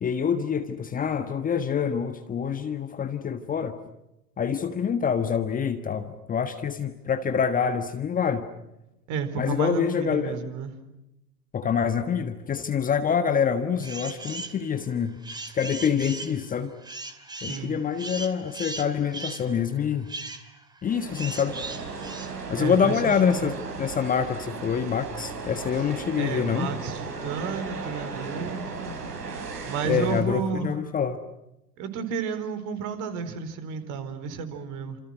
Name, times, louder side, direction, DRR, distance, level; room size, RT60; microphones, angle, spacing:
voice 1, 0.0-3.8 4.4-8.5 9.4-10.3 11.5-15.2 15.5-16.7 17.4-20.1 20.8-21.6 22.5-26.7 29.8-31.2, left 7 dB, 15° left, 8 dB, 1.5 m, -26 dB
voice 2, 9.1-10.8 17.4-17.8 22.5-23.5 25.8-25.9 26.2-29.0 29.7-30.7 31.8-35.0, right 6 dB, 35° right, 10 dB, 4.3 m, -32 dB
sound 1, 13.8-14.6 15.0-23.2, right 2 dB, 10° right, 2.7 m, -38 dB
sound 2, 20.9-30.2, right 4 dB, 70° right, 7.2 m, -36 dB
30.0 x 27.5 x 6.3 m, 0.90 s
figure-of-eight pair, 100°, 49 cm